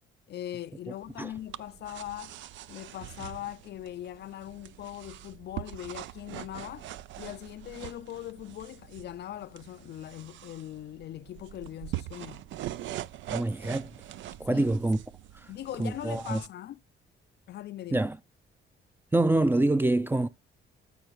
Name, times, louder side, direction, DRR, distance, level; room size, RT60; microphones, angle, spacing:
voice 1, 0.3-2.4 2.7-6.9 7.2-12.4 14.5-14.7 15.5-16.8 17.5-18.1, left 12 dB, 60° left, 0.4 m, -40 dB
sound 1, 1.0-16.5, right 13 dB, 70° right, 0.4 m, -43 dB
voice 2, 13.3-13.9 14.4-15.0 15.8-16.4 17.9-18.2 19.1-20.3, right 2 dB, 10° right, 0.5 m, -25 dB
13.5 x 4.8 x 3.0 m
cardioid pair, 90°, 20 cm